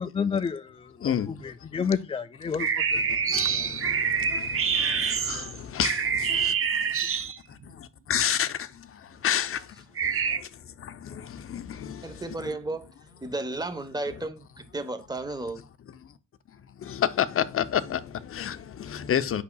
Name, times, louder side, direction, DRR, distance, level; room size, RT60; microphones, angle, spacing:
voice 1, 0.0-1.1 1.4-2.7, left 6 dB, 20° left, 0.3 m, -29 dB
voice 2, 1.0-1.5 1.8-1.9 2.9-12.5 16.0-16.1 16.7-19.4, left 9 dB, 45° left, 0.7 m, -31 dB
sound 1, 2.6-7.6 9.9-10.4, right 6 dB, 45° right, 0.9 m, -26 dB
voice 3, 12.0-12.9 13.2-15.6, right 2 dB, 15° right, 1.0 m, -33 dB
8.3 x 5.9 x 2.3 m
cardioid pair, 90°, 30 cm